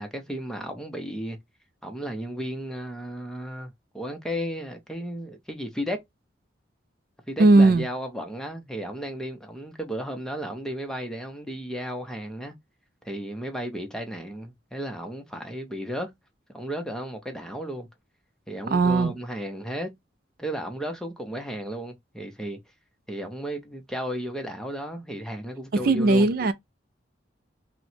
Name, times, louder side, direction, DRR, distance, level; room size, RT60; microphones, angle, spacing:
voice 1, 0.0-1.4 1.8-6.0 7.3-12.5 13.0-16.1 16.5-17.9 18.5-19.9 20.4-22.6 23.1-26.3, equal, 5° left, 0.6 m, -34 dB
voice 2, 7.4-7.9 18.7-19.1 25.8-26.5, right 3 dB, 50° right, 0.3 m, -18 dB
4.3 x 2.1 x 2.7 m
head